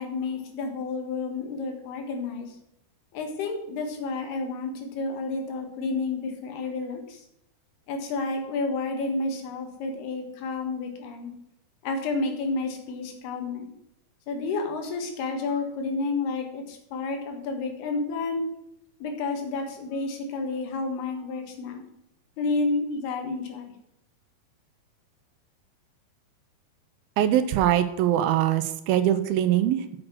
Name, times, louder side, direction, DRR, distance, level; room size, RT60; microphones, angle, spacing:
voice 1, 0.0-2.6 3.1-7.2 7.9-11.3 11.8-13.7 14.3-18.4 19.0-21.8 22.4-23.7, left 3 dB, 80° left, 4 dB, 3.5 m, -30 dB
voice 2, 27.2-30.0, right 11 dB, 80° right, 11 dB, 2.4 m, -22 dB
7.6 x 6.2 x 6.3 m, 0.81 s
omnidirectional pair, 4.5 m